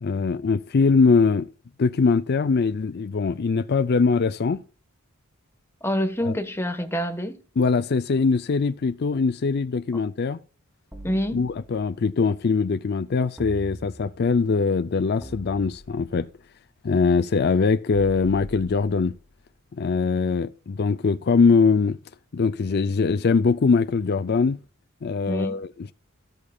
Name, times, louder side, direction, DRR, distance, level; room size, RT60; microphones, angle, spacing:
voice 1, 0.0-1.5 1.8-4.6 6.2-6.3 7.6-10.4 11.3-16.3 16.8-19.1 19.7-22.0 22.3-24.6 25.0-25.9, left 4 dB, 50° left, 0.4 m, -22 dB
voice 2, 5.8-7.4 11.0-11.4 25.3-25.6, equal, 10° left, 1.3 m, -26 dB
sound 1, 10.9-12.0 13.4-14.3 15.2-16.3 17.9-19.4, equal, 10° right, 2.9 m, -42 dB
13.5 x 13.5 x 2.3 m
head